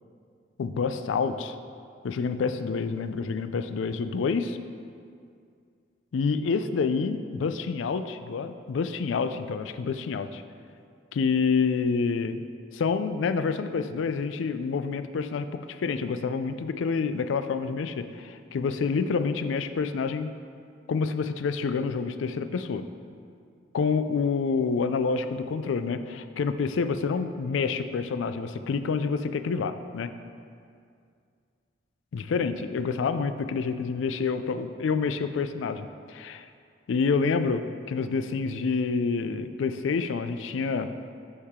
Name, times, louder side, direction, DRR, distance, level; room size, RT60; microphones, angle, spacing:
voice 1, 0.6-1.6 2.0-4.6 6.1-10.4 11.1-12.4 12.7-20.3 20.9-22.8 23.7-30.1 32.1-36.5 36.9-40.9, left 5 dB, 80° left, 10 dB, 0.4 m, -28 dB
7.0 x 6.5 x 3.6 m, 2.3 s
head